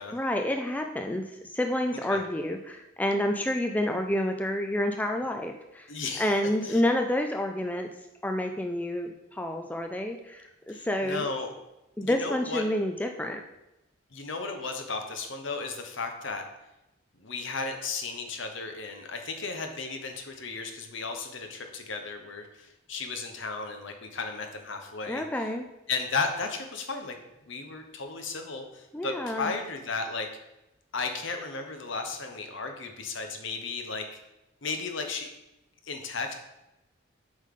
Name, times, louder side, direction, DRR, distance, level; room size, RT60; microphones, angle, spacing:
voice 1, 0.1-5.9 6.2-7.9 8.2-11.3 12.0-13.4 25.1-25.7 28.9-29.5, left 1 dB, 10° left, 4 dB, 0.3 m, -29 dB
voice 2, 5.9-6.3 6.6-6.8 10.7-11.5 12.0-12.6 14.1-16.4 17.2-25.4 25.9-27.1 27.5-30.3 30.9-34.2 34.6-35.3 35.8-36.3, left 4 dB, 65° left, 5 dB, 1.0 m, -34 dB
7.5 x 5.2 x 3.7 m, 0.94 s
head